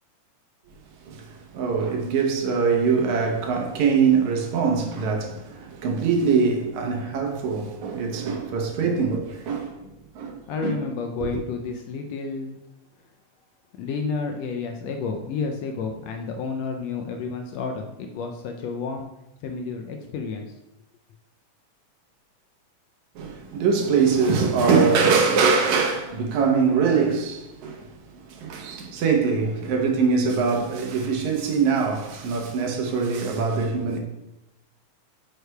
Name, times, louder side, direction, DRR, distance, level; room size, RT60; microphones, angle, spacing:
voice 1, 1.0-10.8 23.2-34.0, right 5 dB, 75° right, 2.3 m, -23 dB
voice 2, 10.5-12.6 13.8-19.1 19.4-20.5, left 4 dB, 80° left, 1.5 m, -30 dB
9.0 x 6.5 x 2.2 m
omnidirectional pair, 3.4 m